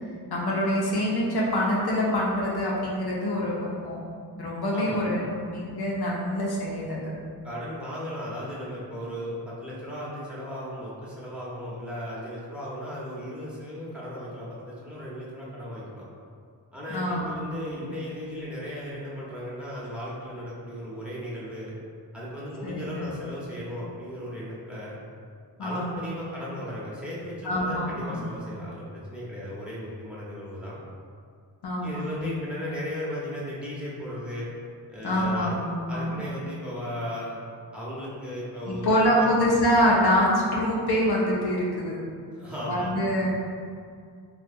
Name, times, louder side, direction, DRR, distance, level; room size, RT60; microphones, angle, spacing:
voice 1, 0.3-4.0 4.3-7.0 16.9-17.4 22.6-23.1 25.6-26.0 27.4-28.2 31.6-32.3 35.0-36.1 38.6-41.9 42.7-43.3, equal, 65° left, -5 dB, 0.7 m, -25 dB
voice 2, 7.4-16.0 16.7-21.7 22.1-24.9 25.6-30.8 31.8-34.5 34.9-35.5 35.9-37.4 37.7-39.3 42.3-42.9, equal, 5° right, -8 dB, 1.0 m, -36 dB
3.4 x 2.3 x 2.6 m, 2.2 s
cardioid pair, 55°, 41 cm